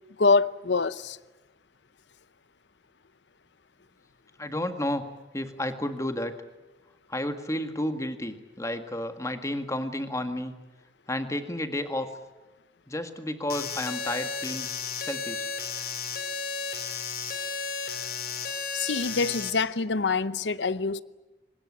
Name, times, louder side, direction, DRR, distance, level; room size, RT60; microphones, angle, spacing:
voice 1, 0.2-1.2 18.7-21.0, left 4 dB, 80° left, 0.8 m, -25 dB
voice 2, 4.4-5.0 5.3-6.3 7.1-10.5 11.1-12.1 12.9-15.5, left 1 dB, 15° left, 1.8 m, -31 dB
sound 1, 13.5-19.5, left 5 dB, 55° left, 3.2 m, -33 dB
24.0 x 20.0 x 9.8 m
head